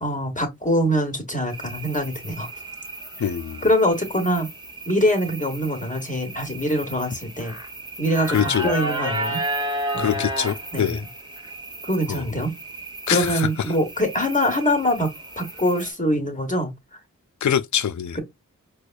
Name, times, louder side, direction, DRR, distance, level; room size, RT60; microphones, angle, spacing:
voice 1, 0.0-2.5 3.2-3.3 3.6-4.5 4.9-7.5 8.0-9.4 9.9-10.2 10.7-11.0 11.8-12.5 13.1-17.0 18.1-18.2, equal, 25° left, 1.4 m, -24 dB
sound 1, 1.5-15.9, right 1 dB, 15° right, 1.3 m, -33 dB
voice 2, 3.2-3.6 8.3-8.7 10.0-11.0 12.1-12.2 13.1-13.5 17.4-18.2, left 9 dB, 60° left, 0.5 m, -24 dB
4.5 x 2.3 x 2.5 m
wide cardioid pair, 40°, 33 cm